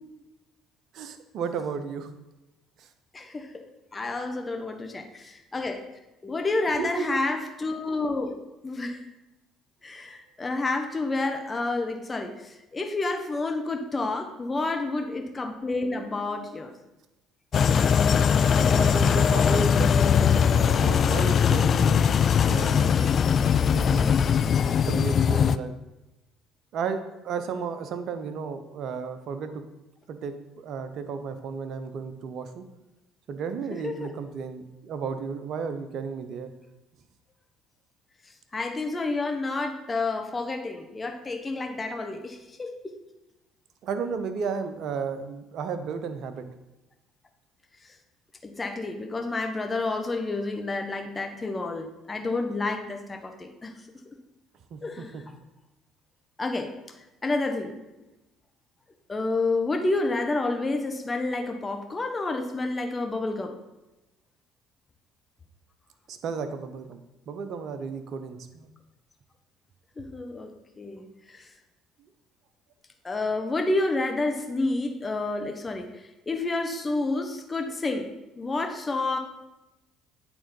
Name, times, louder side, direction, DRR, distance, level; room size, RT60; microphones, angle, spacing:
voice 1, 0.9-2.1 2.8-2.9 6.8-7.2 18.6-23.3 23.7-24.1 24.8-25.7 26.7-29.6 30.1-32.7 33.3-36.5 43.8-46.4 54.7-55.2 66.1-68.7, right 5 dB, 60° right, 9 dB, 0.8 m, -33 dB
voice 2, 3.1-3.6 3.9-5.8 6.2-9.0 9.8-16.8 33.7-34.1 38.5-43.0 47.8-48.0 48.4-53.7 54.8-55.1 56.4-56.7 57.2-57.7 59.1-63.5 70.0-70.5 70.8-71.5 73.0-78.1 78.3-79.2, left 2 dB, 25° left, 4 dB, 1.0 m, -29 dB
sound 1, 17.5-25.6, left 7 dB, 50° left, 0.3 m, -21 dB
8.9 x 3.8 x 5.4 m, 0.99 s
hypercardioid pair, 60°, 0 cm